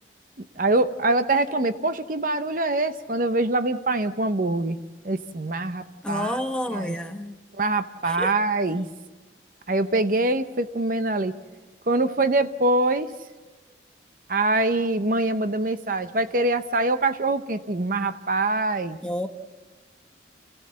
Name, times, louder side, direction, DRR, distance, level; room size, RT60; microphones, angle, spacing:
voice 1, 0.6-4.8 5.0-6.4 6.7-6.9 7.6-8.9 9.7-11.3 11.9-13.1 14.3-19.0, right 2 dB, 50° right, 11 dB, 0.7 m, -24 dB
voice 2, 6.0-7.4 8.0-8.3 19.0-19.3, left 1 dB, 5° left, 5 dB, 1.0 m, -29 dB
29.0 x 16.0 x 7.5 m, 1.2 s
head